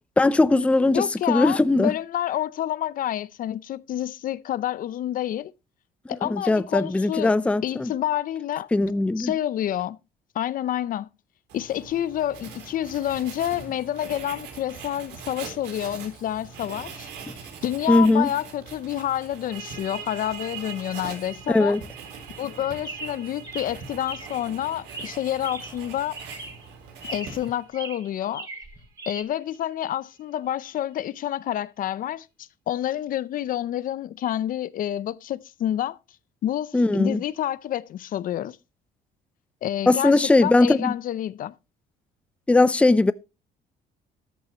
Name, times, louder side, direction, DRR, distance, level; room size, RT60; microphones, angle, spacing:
voice 1, 0.2-1.9 6.2-7.9 8.7-9.3 17.9-18.3 21.5-21.8 36.7-37.2 39.9-40.9 42.5-43.1, left 2 dB, 5° left, 0.5 m, -19 dB
voice 2, 0.9-5.5 6.1-7.3 7.6-8.7 9.2-10.0 10.3-11.1 11.5-17.1 17.6-21.8 22.4-26.2 27.1-28.5 29.1-36.0 36.4-38.6 39.6-41.5, left 11 dB, 55° left, 0.6 m, -28 dB
Writing, 11.5-27.7, right 5 dB, 85° right, 3.9 m, -42 dB
sound 1, 19.5-30.9, right 9 dB, 55° right, 4.5 m, -46 dB
Chirp tweet, 22.8-24.5 24.9-25.9 26.1-26.7 27.0-27.5 27.7-29.2, right 2 dB, 20° right, 3.2 m, -39 dB
14.0 x 10.5 x 2.9 m
cardioid pair, 110°, 17 cm